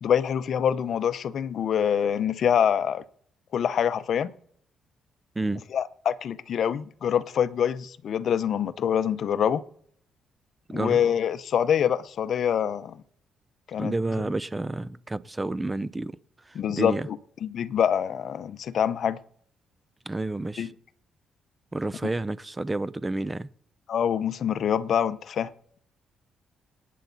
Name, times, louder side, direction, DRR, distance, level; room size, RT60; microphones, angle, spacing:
voice 1, 0.0-3.0 3.5-4.3 5.7-9.6 10.7-13.0 13.7-14.2 16.5-19.2 20.6-20.7 23.9-25.5, left 8 dB, 60° left, 0.8 m, -25 dB
voice 2, 10.7-11.0 13.8-16.2 16.5-17.1 20.1-20.7 21.7-23.5, right 2 dB, 15° right, 0.6 m, -30 dB
26.5 x 9.4 x 4.0 m
cardioid pair, 90°, 0 cm